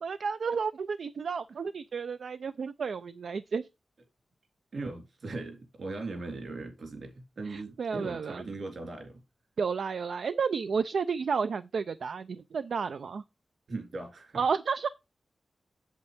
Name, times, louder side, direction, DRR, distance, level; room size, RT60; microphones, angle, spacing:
voice 1, 0.0-3.6 7.5-8.4 9.6-13.2 14.3-14.9, right 5 dB, 80° right, 0.4 m, -31 dB
voice 2, 4.7-9.2 13.7-14.4, right 3 dB, 65° right, 3.5 m, -39 dB
8.1 x 8.0 x 3.5 m
wide cardioid pair, 125°, 0 cm